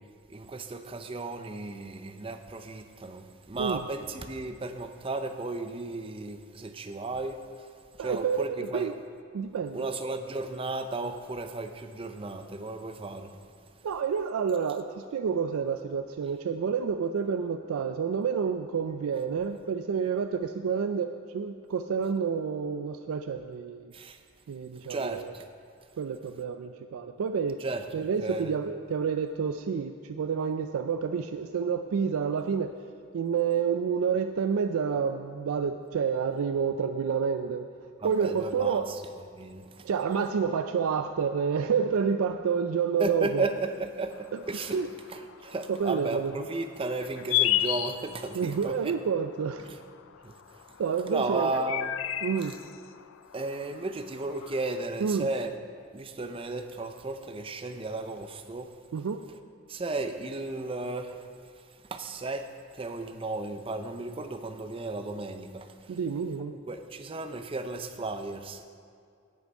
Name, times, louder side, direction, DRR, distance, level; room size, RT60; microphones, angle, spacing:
voice 1, 0.3-7.7 8.0-8.9 9.7-13.3 23.9-24.2 24.9-25.5 27.6-28.5 38.0-39.0 39.4-39.9 43.0-44.8 45.1-48.9 49.7-49.8 50.2-50.8 51.1-51.9 53.3-55.5 55.9-58.7 59.7-61.3 61.6-62.5 62.7-66.0 66.5-68.6, right 2 dB, 25° right, 8 dB, 0.5 m, -34 dB
voice 2, 8.0-8.9 9.3-9.9 13.8-23.9 24.5-25.3 26.0-27.6 27.9-32.7 33.1-38.9 39.8-43.5 44.3-44.4 44.7-44.9 45.7-46.3 48.3-49.7 50.8-51.5 52.2-52.5 55.0-55.3 58.9-59.2 65.9-66.5, right 6 dB, 85° right, 7 dB, 0.4 m, -29 dB
sound 1, 44.1-54.9, left 13 dB, 65° left, 0.3 m, -35 dB
8.6 x 7.9 x 5.3 m, 2.3 s
head